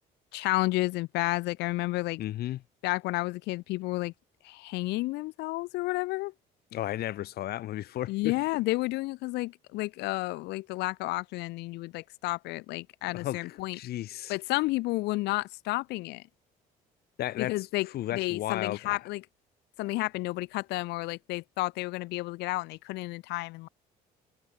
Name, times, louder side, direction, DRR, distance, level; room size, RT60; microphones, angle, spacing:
voice 1, 0.3-2.2 2.8-4.1 4.4-6.3 8.1-13.8 14.3-16.2 17.4-19.2 19.8-23.7, left 21 dB, 85° left, 0.7 m, -31 dB
voice 2, 2.2-2.6 6.7-8.3 13.1-14.3 17.2-19.0, left 14 dB, 70° left, 2.5 m, -34 dB
cardioid pair, 110°, 17 cm